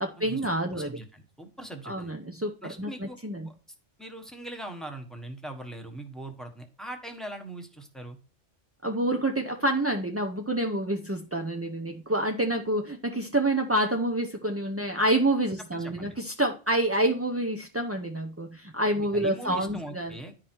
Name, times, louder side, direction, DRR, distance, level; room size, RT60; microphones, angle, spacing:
voice 1, 0.0-0.9 1.9-3.5 8.8-20.1, right 1 dB, 20° right, 3 dB, 0.4 m, -28 dB
voice 2, 0.7-2.1 2.6-3.2 3.4-3.5 4.0-8.2 15.7-16.1 19.1-20.5, right 1 dB, ahead, 4 dB, 1.2 m, -41 dB
10.5 x 4.9 x 4.5 m, 0.36 s
omnidirectional pair, 1.3 m